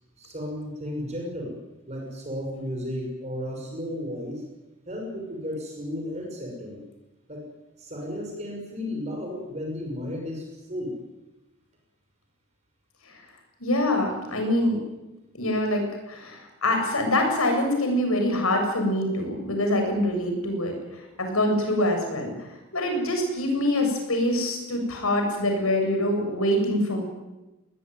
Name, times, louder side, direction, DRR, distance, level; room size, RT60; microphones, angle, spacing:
voice 1, 0.2-1.6 1.9-4.4 4.9-6.8 7.3-7.4 7.8-11.0, left 1 dB, 30° right, 1 dB, 6.0 m, -34 dB
voice 2, 13.6-14.8 15.3-20.7 21.2-22.3 22.7-27.0, left 1 dB, 85° left, 4 dB, 7.6 m, -24 dB
21.0 x 20.5 x 9.5 m, 1.0 s
head